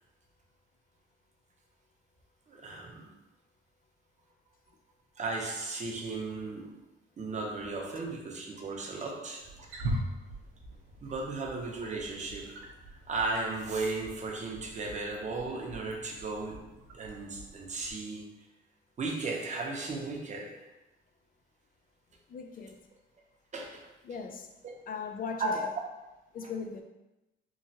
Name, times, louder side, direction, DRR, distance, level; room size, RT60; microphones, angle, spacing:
voice 1, 2.5-3.1 5.2-6.8 7.2-9.5 11.0-16.6 16.9-18.4 19.0-20.7 23.5-23.9 25.4-25.6, right 3 dB, 35° right, -1 dB, 0.7 m, -35 dB
Wild animals, 9.4-17.9, right 1 dB, 90° right, 0.5 m, -42 dB
voice 2, 22.3-22.9 24.0-24.5 24.9-25.7 26.3-26.8, left 5 dB, 45° left, 5 dB, 0.4 m, -39 dB
3.1 x 2.2 x 2.8 m, 0.98 s
cardioid pair, 90°, 20 cm